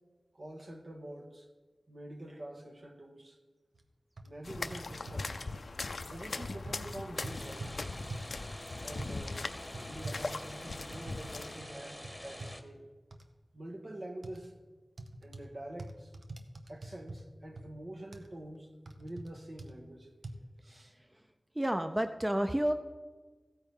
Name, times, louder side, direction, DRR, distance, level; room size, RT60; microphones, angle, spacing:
voice 1, 0.3-1.5 1.9-3.4 4.2-5.3 6.1-8.0 8.8-9.4 9.8-12.9 13.5-14.5 15.2-16.1 16.7-18.7 19.0-20.1 20.6-20.9, right 1 dB, 65° right, 3 dB, 1.5 m, -46 dB
sound 1, 3.7-3.8 4.2-4.3 4.7-5.6 6.1-6.3 6.7-7.7 8.1-8.4 9.0-9.1 9.7-11.3 11.6-11.7 12.0-12.5 13.1-13.2 14.2-14.4 15.0-15.5 15.8-17.2 17.6-17.7 18.1-18.3 18.9-19.3 19.6-19.7 20.2-20.3, right 2 dB, 80° right, 0.8 m, -44 dB
sound 2, 4.4-11.6, left 3 dB, 80° left, 0.5 m, -40 dB
sound 3, 7.2-12.6, left 1 dB, 10° left, 1.2 m, -47 dB
voice 2, 21.6-22.7, equal, 20° right, 7 dB, 0.6 m, -30 dB
15.0 x 8.7 x 3.7 m, 1.3 s
cardioid pair, 40°, 0 cm